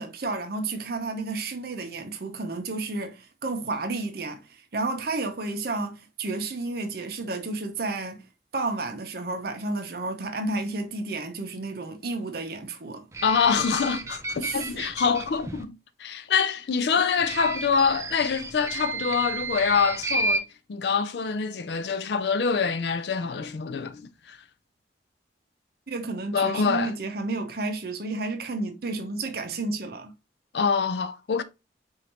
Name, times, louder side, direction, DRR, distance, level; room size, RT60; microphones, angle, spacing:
voice 1, 0.0-8.2 8.5-13.1 14.4-14.8 25.9-30.1, right 3 dB, 60° right, 0.7 m, -31 dB
sound 1, 13.1-15.6 17.2-20.4, right 3 dB, 15° right, 0.3 m, -32 dB
voice 2, 13.2-24.0 24.3-24.4 26.3-26.9 30.5-31.4, left 5 dB, 70° left, 0.4 m, -25 dB
5.0 x 2.7 x 2.8 m
head